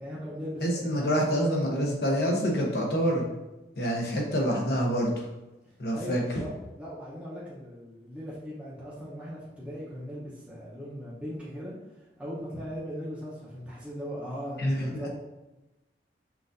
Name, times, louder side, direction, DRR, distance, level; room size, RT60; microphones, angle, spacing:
voice 1, 0.0-1.2 5.6-15.1, equal, 5° right, -8 dB, 0.8 m, -39 dB
voice 2, 0.6-3.3 3.8-5.1 5.8-6.2 14.6-15.1, equal, 65° left, -1 dB, 0.9 m, -26 dB
5.8 x 2.6 x 2.6 m, 1.0 s
head